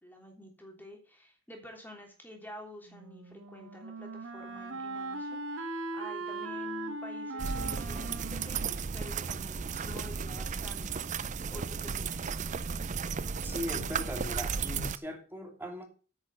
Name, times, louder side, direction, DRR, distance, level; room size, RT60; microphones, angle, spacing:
voice 1, 0.0-10.9 11.5-12.3, left 1 dB, 10° left, 2 dB, 3.1 m, -49 dB
Wind instrument woodwind instrument, 2.9-9.7, right 2 dB, 70° right, 1.7 m, -40 dB
sound 1, 7.4-15.0, right 5 dB, 35° right, 0.5 m, -34 dB
voice 2, 13.4-15.9, left 1 dB, 10° right, 2 dB, 2.7 m, -39 dB
9.7 x 6.2 x 6.9 m, 0.37 s
head